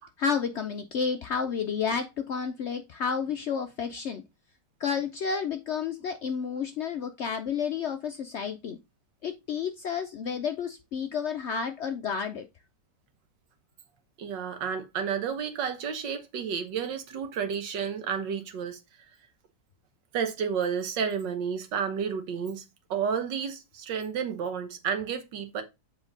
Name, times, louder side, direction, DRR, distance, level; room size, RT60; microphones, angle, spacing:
voice 1, 0.2-4.2 4.8-8.8 9.2-12.5, left 6 dB, 80° left, 0.6 m, -31 dB
voice 2, 14.2-18.8 20.1-22.7 22.9-25.6, right 7 dB, 90° right, 1.8 m, -31 dB
7.2 x 4.4 x 3.8 m
omnidirectional pair, 1.9 m